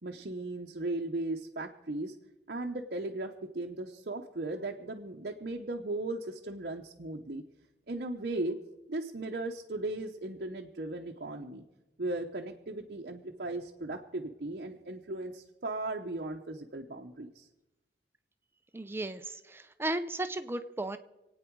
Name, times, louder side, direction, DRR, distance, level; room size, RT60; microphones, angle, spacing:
voice 1, 0.0-2.1 2.5-7.4 7.9-8.6 8.9-11.6 12.0-17.5, right 2 dB, 55° right, 1 dB, 0.9 m, -37 dB
voice 2, 18.7-21.0, right 2 dB, 15° right, 9 dB, 0.7 m, -35 dB
27.0 x 9.0 x 4.7 m, 0.99 s
head